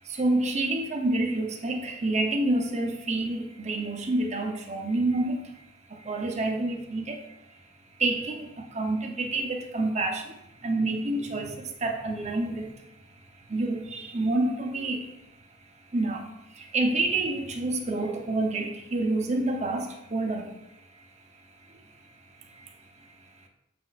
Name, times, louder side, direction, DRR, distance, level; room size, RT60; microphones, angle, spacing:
voice 1, 0.2-5.4 6.1-7.2 8.0-8.3 8.7-10.2 10.6-11.5 11.8-12.6 13.5-15.0 15.9-16.2 16.7-20.4, right 2 dB, 35° right, 3 dB, 0.8 m, -27 dB
6.7 x 5.9 x 2.5 m, 0.90 s
head